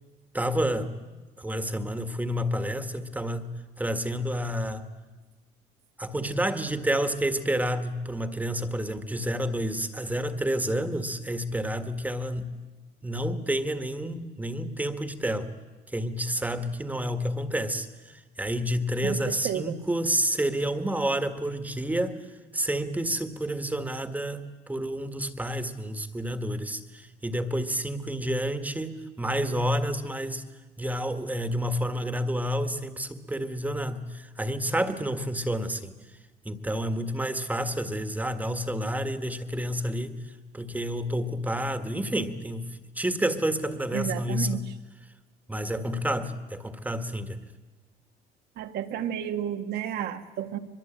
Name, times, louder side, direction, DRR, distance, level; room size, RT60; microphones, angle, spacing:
voice 1, 0.3-0.9 1.4-4.9 6.0-12.6 13.0-15.5 15.9-22.2 22.5-30.4 30.8-35.9 36.5-40.2 40.5-44.6 45.5-47.4, equal, 10° right, 9 dB, 1.7 m, -29 dB
voice 2, 19.0-19.8 43.9-44.6 48.6-50.6, right 10 dB, 70° right, 7 dB, 1.7 m, -31 dB
23.5 x 22.5 x 8.9 m, 1.2 s
cardioid pair, 110°, 17 cm